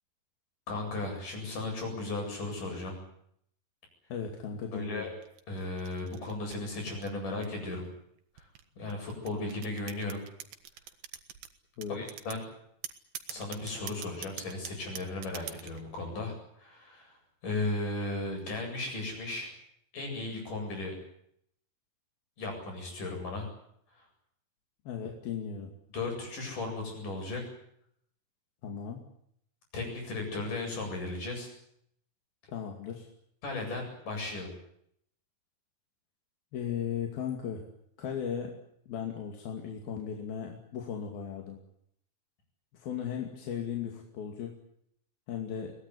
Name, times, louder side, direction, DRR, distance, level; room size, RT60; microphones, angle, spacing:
voice 1, 0.7-3.0 4.7-5.1 5.5-7.8 8.4-8.5 8.8-10.2 11.9-12.4 13.3-17.2 17.4-19.5 19.9-20.9 22.4-23.5 24.0-24.1 25.9-27.4 29.7-31.5 33.4-34.5, left 2 dB, 60° left, 3 dB, 9.6 m, -36 dB
voice 2, 4.1-5.0 11.8-12.0 24.9-25.7 28.6-29.1 32.5-33.1 36.5-37.6 38.0-38.6 38.9-41.6 42.7-44.5 45.3-45.7, left 8 dB, 90° left, 2 dB, 4.4 m, -36 dB
sound 1, 5.2-7.7 8.4-11.5 11.8-12.4 12.8-15.8, right 10 dB, 90° right, 3.4 m, -43 dB
22.5 x 19.5 x 9.7 m, 0.70 s
omnidirectional pair, 4.1 m